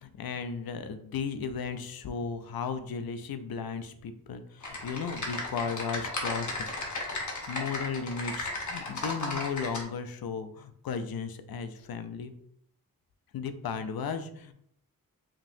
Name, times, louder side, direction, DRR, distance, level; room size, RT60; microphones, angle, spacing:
voice 1, 0.0-6.5 7.5-12.3 13.3-14.5, left 6 dB, 75° left, 9 dB, 0.5 m, -35 dB
Typing, 4.6-9.8, left 2 dB, 55° left, 1.0 m, -35 dB
5.2 x 2.7 x 2.6 m, 0.69 s
wide cardioid pair, 80°, 36 cm